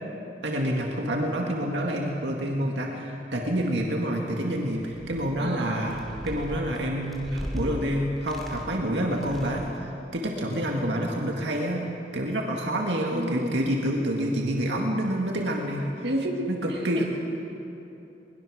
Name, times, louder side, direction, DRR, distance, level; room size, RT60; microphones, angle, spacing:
voice 1, 0.4-9.6 10.1-11.9 12.1-15.9 16.5-17.0, equal, 80° right, 0 dB, 2.1 m, -28 dB
sound 1, 4.7-5.4 5.8-7.7 8.2-8.8 9.1-9.8, equal, ahead, 3.1 m, -38 dB
voice 2, 5.4-5.9 13.1-13.6 16.0-17.0, right 1 dB, 65° right, 1 dB, 2.3 m, -31 dB
22.0 x 21.5 x 6.5 m, 2.9 s
head